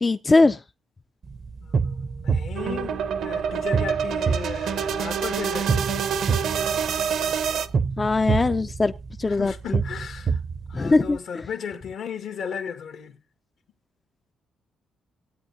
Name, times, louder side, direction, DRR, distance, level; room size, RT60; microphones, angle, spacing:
voice 1, 0.0-0.6 8.0-8.9 9.2-9.8 10.7-11.2, left 3 dB, 25° left, 0.4 m, -20 dB
sound 1, 1.2-11.2, right 5 dB, 45° right, 0.6 m, -28 dB
voice 2, 1.6-6.1 9.2-10.4 10.7-13.2, left 7 dB, 75° left, 1.7 m, -36 dB
sound 2, 2.6-7.7, right 7 dB, 75° right, 0.9 m, -27 dB
18.0 x 8.6 x 2.7 m
cardioid pair, 90°, 0 cm